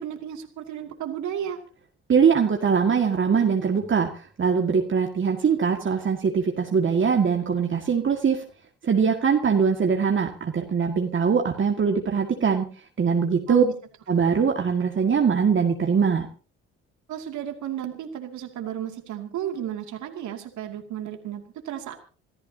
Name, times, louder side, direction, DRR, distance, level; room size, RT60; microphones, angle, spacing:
voice 1, 0.0-1.6 13.5-13.7 17.1-21.9, right 10 dB, 70° right, 4 dB, 2.5 m, -33 dB
voice 2, 2.1-8.4 8.8-12.7 13.0-13.6 14.1-16.3, right 6 dB, 40° right, 2 dB, 2.0 m, -22 dB
27.5 x 13.5 x 2.8 m, 0.39 s
supercardioid pair, 60°, 31 cm